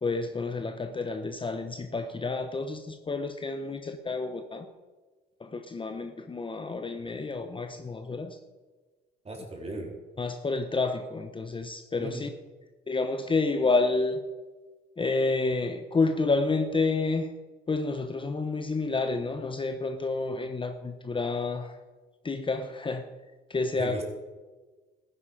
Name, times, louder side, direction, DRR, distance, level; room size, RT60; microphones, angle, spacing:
voice 1, 0.0-4.7 5.4-8.4 10.2-12.3 12.9-14.2 15.0-17.3 17.7-21.8 22.2-23.1 23.5-24.0, left 3 dB, 25° left, 7 dB, 0.9 m, -29 dB
voice 2, 9.2-9.9 12.0-12.3 23.8-24.0, right 1 dB, 30° right, 1 dB, 3.6 m, -36 dB
14.0 x 10.0 x 5.2 m, 1.3 s
cardioid pair, 90°, 20 cm